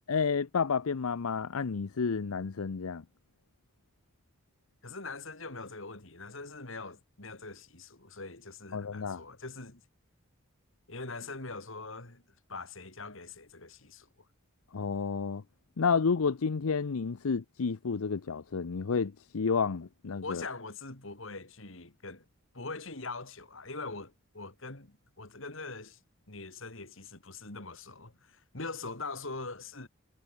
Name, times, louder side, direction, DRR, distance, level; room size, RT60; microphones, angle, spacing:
voice 1, 0.1-3.0 8.7-9.2 14.7-15.4 15.8-20.4, left 5 dB, 85° left, 0.6 m, -30 dB
voice 2, 4.8-9.8 10.9-12.2 12.5-14.3 20.2-22.2 22.5-26.0 26.3-29.9, left 3 dB, 65° left, 3.0 m, -42 dB
head